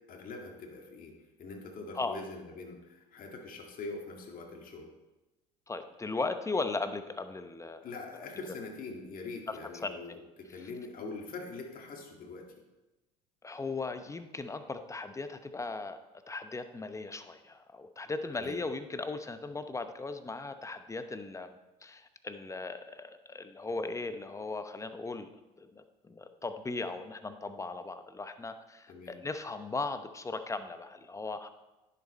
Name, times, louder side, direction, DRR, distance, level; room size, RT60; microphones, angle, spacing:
voice 1, 0.1-4.9 7.8-12.5 18.3-18.6 28.9-29.2, left 3 dB, 45° left, 1 dB, 2.1 m, -43 dB
voice 2, 5.7-7.8 9.5-10.0 13.4-16.0 16.3-25.3 25.6-31.5, left 3 dB, 15° left, 9 dB, 0.8 m, -37 dB
10.5 x 6.8 x 4.3 m, 1.1 s
hypercardioid pair, 80°, 20 cm